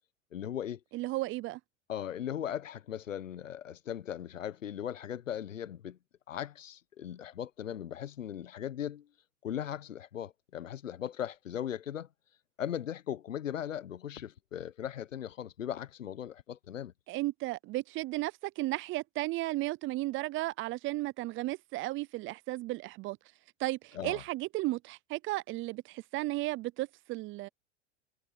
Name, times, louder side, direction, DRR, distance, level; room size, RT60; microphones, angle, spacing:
voice 1, 0.3-0.8 1.9-6.0 6.3-9.1 9.4-12.1 12.6-16.9 23.9-24.2, left 10 dB, 85° left, 1.0 m, -38 dB
voice 2, 0.9-1.6 17.1-23.2 23.6-27.5, right 19 dB, 35° right, 0.6 m, -34 dB
hypercardioid pair, 100°, 38 cm